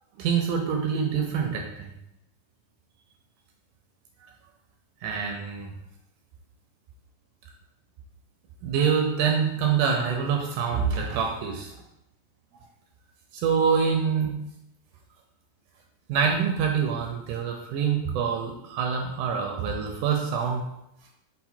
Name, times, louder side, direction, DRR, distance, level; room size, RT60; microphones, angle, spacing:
voice 1, 0.2-1.9 5.0-5.7 8.6-11.7 13.3-14.4 16.1-20.7, right 6 dB, 80° right, 1 dB, 1.9 m, -25 dB
5.4 x 2.2 x 4.2 m, 0.81 s
omnidirectional pair, 3.8 m